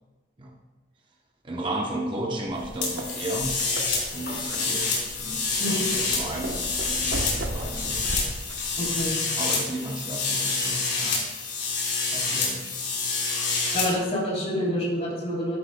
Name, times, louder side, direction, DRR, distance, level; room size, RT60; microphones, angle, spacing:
voice 1, 1.4-3.6 4.1-8.0 9.4-11.3 12.1-12.8, right 1 dB, 25° right, 0 dB, 0.8 m, -34 dB
sound 1, 2.5-9.1, right 1 dB, 85° right, 1.0 m, -36 dB
sound 2, 2.8-13.9, left 4 dB, 60° left, 2.9 m, -28 dB
voice 2, 5.6-5.9 8.8-9.1 13.7-15.6, equal, 35° left, -4 dB, 3.4 m, -27 dB
13.0 x 10.0 x 2.2 m, 1.3 s
head